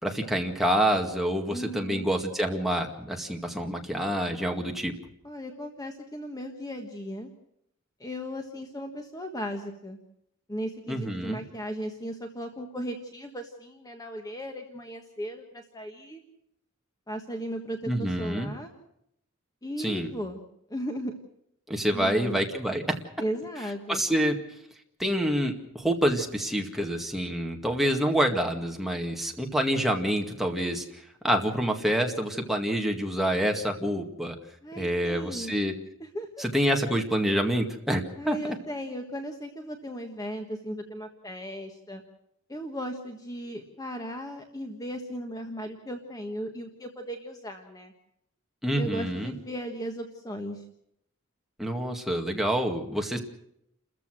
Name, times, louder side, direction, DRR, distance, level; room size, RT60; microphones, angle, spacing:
voice 1, 0.0-4.9 10.9-11.4 17.9-18.5 19.8-20.1 21.7-23.0 23.9-24.4 25.0-34.4 34.8-35.7 36.4-38.4 48.6-49.3 51.6-53.2, equal, ahead, 2 dB, 2.0 m, -27 dB
voice 2, 1.5-2.1 5.2-7.3 8.0-10.0 10.5-16.2 17.1-18.7 19.6-20.4 20.7-21.1 21.9-22.4 23.2-24.0 34.6-35.5 36.0-36.5 38.2-42.0 42.5-47.9 48.8-50.6 53.1-53.2, equal, 15° left, 4 dB, 1.5 m, -36 dB
30.0 x 14.5 x 6.3 m, 0.76 s
head